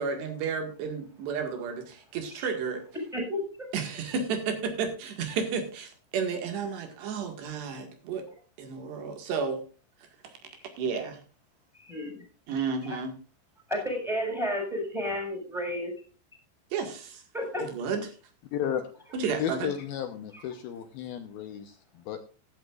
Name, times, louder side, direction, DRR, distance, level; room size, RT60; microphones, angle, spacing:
voice 1, 0.0-2.8 3.7-8.3 8.6-9.6 10.0-10.1 10.8-11.2 12.5-13.1 16.7-17.2 17.6-18.0 19.1-19.7, right 5 dB, 75° right, 5 dB, 4.0 m, -32 dB
voice 2, 3.1-3.4 11.8-12.2 13.7-15.9 17.3-17.7, equal, ahead, 2 dB, 5.3 m, -31 dB
voice 3, 18.5-18.9 19.4-22.3, left 9 dB, 70° left, 7 dB, 2.5 m, -33 dB
16.0 x 11.5 x 2.5 m, 0.37 s
omnidirectional pair, 5.0 m